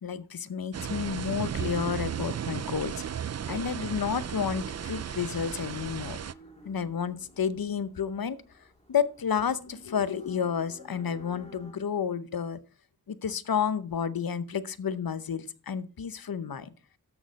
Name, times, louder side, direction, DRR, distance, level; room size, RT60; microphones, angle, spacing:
voice 1, 0.0-3.0 3.5-6.2 6.6-12.6 13.1-16.7, left 7 dB, 65° left, 16 dB, 0.8 m, -31 dB
sound 1, 0.7-6.3, right 8 dB, 45° right, 0.4 m, -35 dB
sound 2, 3.9-11.7, left 1 dB, 15° left, 4.1 m, -53 dB
13.0 x 6.3 x 4.1 m, 0.38 s
wide cardioid pair, 55°, 39 cm